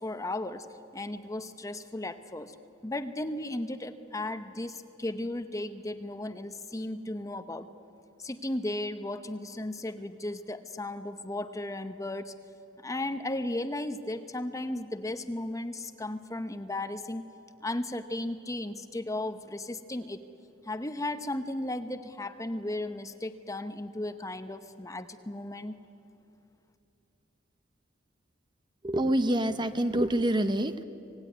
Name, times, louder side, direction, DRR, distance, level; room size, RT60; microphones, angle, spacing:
voice 1, 0.0-0.7 0.9-2.5 2.8-7.7 8.2-12.3 12.8-17.2 17.6-20.2 20.7-25.8, left 1 dB, 20° left, 10 dB, 0.9 m, -35 dB
voice 2, 28.8-30.8, right 1 dB, 25° right, 10 dB, 0.8 m, -26 dB
26.0 x 19.0 x 9.6 m, 2.7 s
head